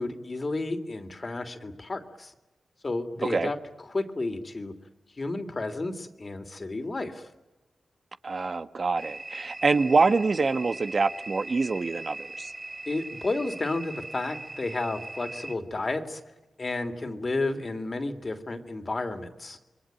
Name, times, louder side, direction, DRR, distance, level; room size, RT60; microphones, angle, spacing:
voice 1, 0.0-2.3 2.8-3.6 3.9-4.7 5.2-7.3 12.9-16.2 16.6-19.6, left 2 dB, 45° left, 3.1 m, -32 dB
voice 2, 8.2-12.5, right 4 dB, 55° right, 1.3 m, -25 dB
sound 1, 9.0-15.5, right 2 dB, 30° right, 4.4 m, -40 dB
28.5 x 22.5 x 9.2 m
cardioid pair, 55°, 0 cm